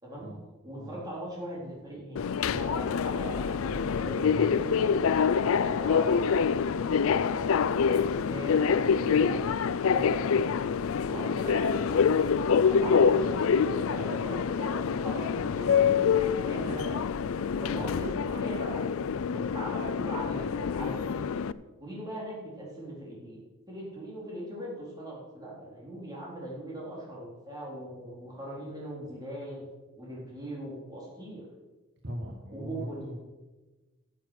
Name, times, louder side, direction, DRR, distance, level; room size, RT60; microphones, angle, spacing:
voice 1, 0.6-6.3 7.1-7.4 7.7-10.5 11.0-12.0 12.3-17.1 17.5-18.8 19.3-21.3 21.8-23.4 23.7-29.6 30.0-31.4 32.5-33.0, right 1 dB, 20° right, -5 dB, 4.1 m, -40 dB
Subway metro underground, 2.2-21.5, left 6 dB, 65° left, 0.4 m, -26 dB
voice 2, 4.1-4.6 17.8-18.0 19.3-19.5 32.0-33.2, equal, 55° right, 0 dB, 1.7 m, -40 dB
14.0 x 7.4 x 6.5 m, 1.2 s
head